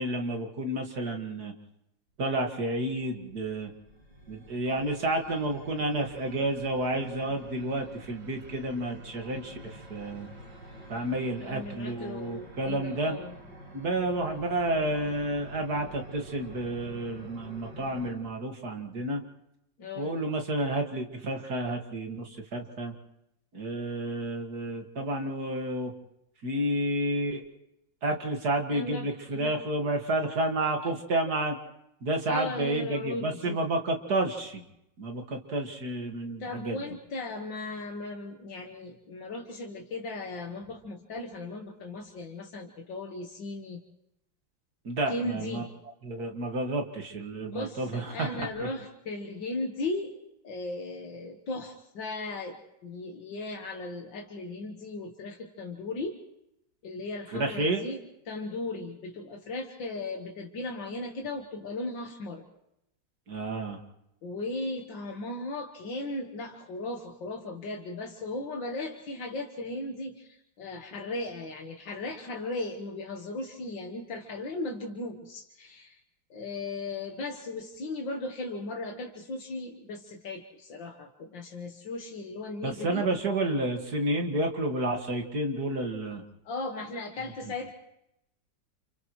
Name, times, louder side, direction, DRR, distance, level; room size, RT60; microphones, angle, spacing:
voice 1, 0.0-1.5 2.2-3.7 4.3-10.3 10.9-13.2 13.7-19.2 20.0-22.9 23.5-25.9 26.4-27.4 28.0-31.6 32.0-34.6 35.0-36.8 44.8-45.6 46.0-48.7 57.3-57.8 63.3-63.8 82.6-86.2, right 1 dB, 60° right, 3 dB, 2.5 m, -30 dB
sound 1, 2.5-18.1, right 1 dB, 85° right, 7.7 m, -48 dB
voice 2, 11.4-13.4 19.8-20.2 28.7-29.1 29.3-29.5 32.3-33.6 36.4-43.8 45.1-45.7 47.4-50.2 50.4-56.2 56.8-58.0 58.3-62.5 64.2-76.0 76.3-83.1 86.5-87.7, left 2 dB, 85° left, 2 dB, 2.2 m, -37 dB
30.0 x 28.5 x 3.2 m, 0.81 s
omnidirectional pair, 2.0 m